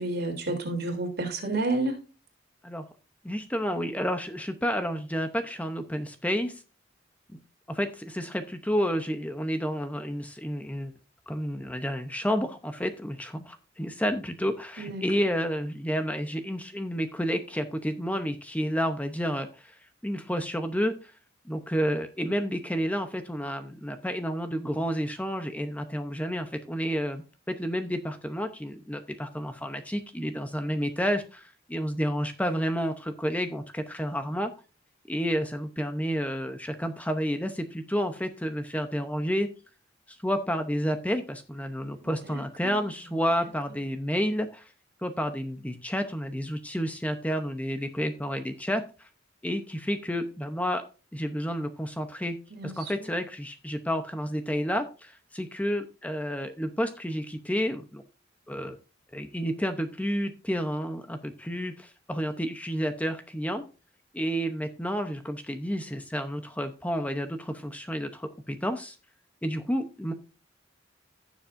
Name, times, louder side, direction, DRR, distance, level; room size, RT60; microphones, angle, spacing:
voice 1, 0.0-2.0 14.8-15.0 42.2-42.8 52.5-53.1, right 2 dB, 55° right, 3.3 m, -31 dB
voice 2, 3.2-6.6 7.7-10.9 11.3-21.1 21.5-34.5 35.1-39.5 40.1-44.7 45.0-49.1 49.4-50.8 51.1-52.4 52.6-58.0 58.5-58.8 59.1-63.6 64.1-69.0 69.4-70.1, equal, 10° left, 0.8 m, -30 dB
16.0 x 7.2 x 2.6 m
head